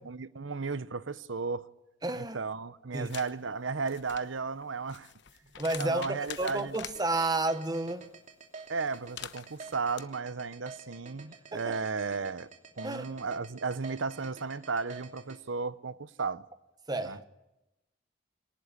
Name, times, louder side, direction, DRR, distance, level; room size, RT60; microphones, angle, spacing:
voice 1, 0.0-1.7 2.1-5.1 5.8-6.8 8.7-12.5 12.8-16.5 17.0-17.2, right 4 dB, 85° right, 0.8 m, -34 dB
voice 2, 2.0-2.4 2.9-3.1 5.6-8.1 11.5-11.7 12.8-13.1 16.9-17.2, right 2 dB, 20° right, 1.2 m, -31 dB
sound 1, 3.0-3.3 3.8-7.0 8.9-10.0, left 9 dB, 65° left, 1.1 m, -45 dB
sound 2, 6.9-15.4, right 4 dB, 40° right, 2.8 m, -48 dB
23.0 x 19.0 x 10.0 m
head